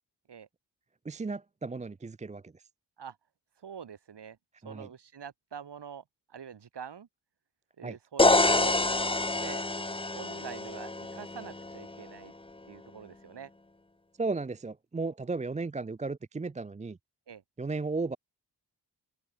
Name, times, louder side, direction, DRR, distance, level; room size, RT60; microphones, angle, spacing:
voice 1, 1.0-2.6 4.6-4.9 7.8-8.0 14.2-17.0 17.6-18.2, right 3 dB, 20° right, 0.4 m, -35 dB
voice 2, 3.6-4.4 4.6-6.0 6.3-7.1 7.8-8.8 9.4-9.6 10.1-12.3 12.7-13.5 17.3-17.4, right 7 dB, 75° right, 1.5 m, -45 dB
sound 1, 8.2-12.0, left 2 dB, 15° left, 0.8 m, -27 dB
open air
wide cardioid pair, 85°, 41 cm